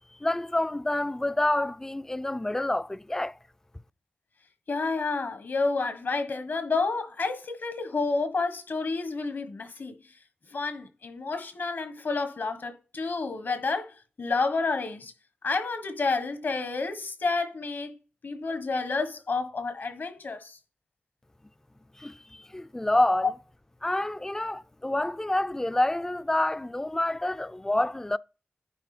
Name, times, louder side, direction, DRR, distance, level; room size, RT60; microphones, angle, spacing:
voice 1, 0.2-3.4 22.0-23.3 23.8-28.2, left 1 dB, 15° left, 0.3 m, -28 dB
voice 2, 4.7-9.9 10.5-13.9 14.2-15.1 15.4-17.9 18.2-20.6, left 3 dB, 70° left, 1.4 m, -30 dB
9.6 x 3.4 x 5.0 m
wide cardioid pair, 85°, 4 cm